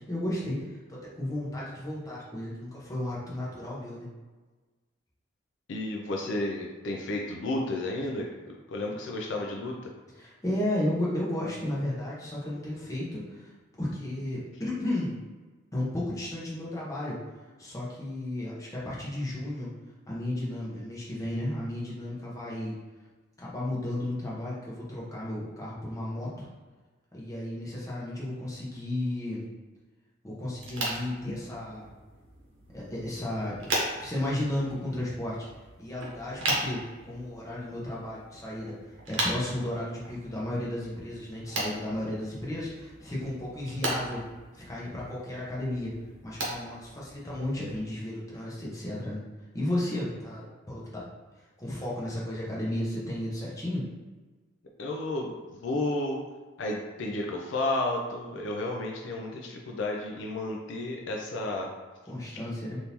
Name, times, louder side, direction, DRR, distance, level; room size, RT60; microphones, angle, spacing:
voice 1, 0.0-4.1 10.2-13.5 13.8-15.2 15.7-17.2 17.6-19.7 20.1-22.7 23.4-26.5 27.1-29.4 30.2-31.9 32.7-33.7 34.0-35.5 35.8-38.8 39.1-44.2 44.5-45.9 46.2-49.2 49.5-51.0 51.6-53.8 62.1-62.8, left 1 dB, 15° left, -6 dB, 0.8 m, -33 dB
voice 2, 5.7-9.9 54.8-56.2 56.6-61.7, left 2 dB, 65° left, 0 dB, 0.4 m, -32 dB
sound 1, 30.5-47.8, right 1 dB, 65° right, 0.8 m, -37 dB
3.5 x 2.6 x 2.9 m, 1.3 s
head